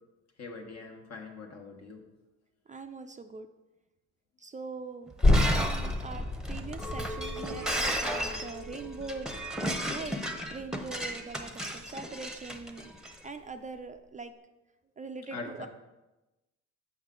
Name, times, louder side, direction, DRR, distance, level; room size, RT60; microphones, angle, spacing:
voice 1, 0.4-2.0 15.3-15.7, left 4 dB, 60° left, 2 dB, 1.2 m, -42 dB
voice 2, 2.7-3.5 4.4-5.1 5.5-9.3 9.9-12.9 13.2-14.3 15.0-15.7, right 4 dB, 25° right, 7 dB, 0.4 m, -42 dB
Shatter, 5.1-13.1, right 1 dB, ahead, 0.8 m, -34 dB
sound 1, 5.2-12.5 12.9-13.0, left 2 dB, 35° left, 1.4 m, -32 dB
Chink clink, 6.8-11.1 11.5-12.1, equal, 80° left, 1.3 m, -45 dB
7.2 x 5.6 x 3.7 m, 1.0 s
cardioid pair, 90°, 30 cm